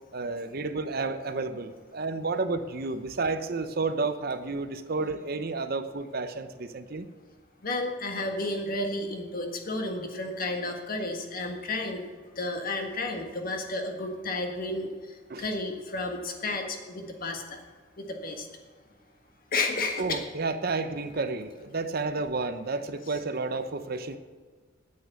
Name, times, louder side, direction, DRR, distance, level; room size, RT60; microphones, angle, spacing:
voice 1, 0.1-7.1 15.3-15.5 20.0-24.2, right 3 dB, 50° right, 10 dB, 0.7 m, -31 dB
voice 2, 7.6-12.0 12.4-14.9 15.4-17.6 18.0-18.5 19.5-20.2, left 2 dB, 45° left, 3 dB, 1.6 m, -32 dB
9.4 x 8.6 x 8.2 m, 1.5 s
head